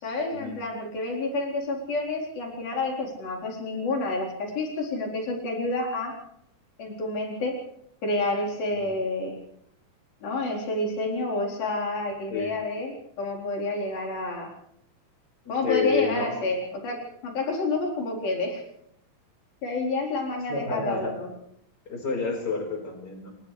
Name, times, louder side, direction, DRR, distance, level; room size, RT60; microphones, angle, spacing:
voice 1, 0.0-6.2 6.8-7.6 8.0-9.4 10.2-14.5 15.5-18.6 19.6-21.3, left 2 dB, 90° left, -1 dB, 6.2 m, -29 dB
voice 2, 15.4-16.3 20.5-21.1 21.8-23.3, left 4 dB, 30° left, 2 dB, 5.3 m, -29 dB
29.5 x 26.5 x 3.4 m, 0.72 s
omnidirectional pair, 4.1 m